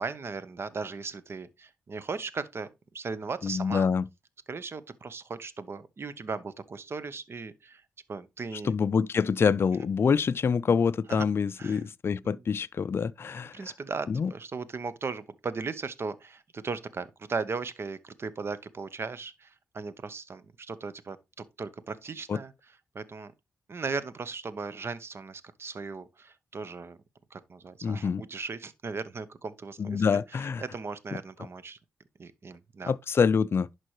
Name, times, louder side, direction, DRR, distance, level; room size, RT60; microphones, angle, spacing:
voice 1, 0.0-3.9 4.5-7.8 8.1-8.7 11.1-11.3 11.6-11.8 12.2-12.4 13.5-21.2 21.6-22.5 22.9-23.3 23.7-27.0 27.3-31.8 32.2-32.9, right 4 dB, 50° right, 0.9 m, -37 dB
voice 2, 3.4-4.0 8.6-13.5 14.1-14.3 22.3-22.4 27.8-28.2 29.8-30.6 31.1-31.2 32.9-33.7, left 6 dB, 50° left, 0.3 m, -26 dB
11.0 x 4.6 x 3.1 m
cardioid pair, 60°, 5 cm